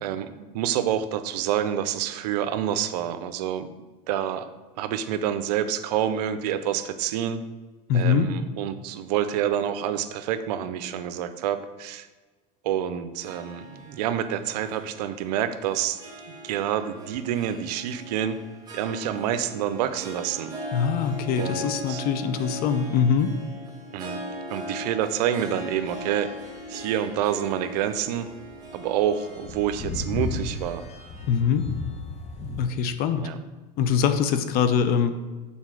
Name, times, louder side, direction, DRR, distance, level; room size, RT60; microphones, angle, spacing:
voice 1, 0.0-3.7 4.1-4.5 4.8-7.4 7.9-12.1 12.6-16.0 16.4-18.4 18.7-20.5 21.4-21.6 21.9-22.0 23.9-24.2 24.5-26.3 26.7-28.3 28.7-30.8 33.2-33.4, right 10 dB, 80° right, 11 dB, 0.7 m, -27 dB
voice 2, 7.9-8.3 20.7-23.3 31.3-31.6 32.6-33.3 33.8-35.1, left 7 dB, 50° left, 10 dB, 0.7 m, -23 dB
Harp, 13.2-31.6, equal, 20° right, 1.9 m, -40 dB
sound 1, 25.3-32.6, left 3 dB, 30° left, 1.4 m, -36 dB
7.2 x 4.1 x 6.3 m, 1.3 s
supercardioid pair, 125°, 20 cm